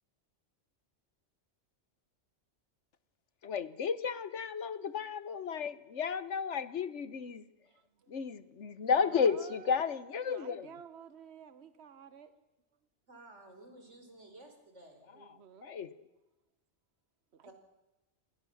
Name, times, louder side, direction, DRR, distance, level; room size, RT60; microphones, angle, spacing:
voice 1, 3.4-7.5 8.1-10.7 15.6-16.1, left 6 dB, 80° left, 15 dB, 1.4 m, -33 dB
voice 2, 7.7-8.1 8.9-9.9 10.3-12.3 15.1-15.7 17.3-17.5, right 7 dB, 65° right, 12 dB, 1.4 m, -51 dB
voice 3, 13.1-15.1 17.4-17.5, right 2 dB, 90° right, 5 dB, 5.1 m, -54 dB
28.5 x 21.0 x 7.2 m, 1.0 s
omnidirectional pair, 1.2 m